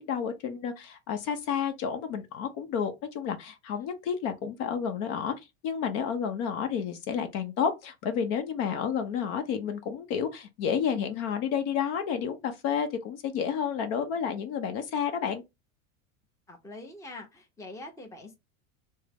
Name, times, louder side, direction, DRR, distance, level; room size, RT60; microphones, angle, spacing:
voice 1, 0.0-5.3 5.6-15.4, left 7 dB, 55° left, 0.9 m, -30 dB
voice 2, 16.5-18.4, left 2 dB, 10° left, 0.8 m, -44 dB
3.5 x 2.2 x 3.4 m
supercardioid pair, 125°, 39 cm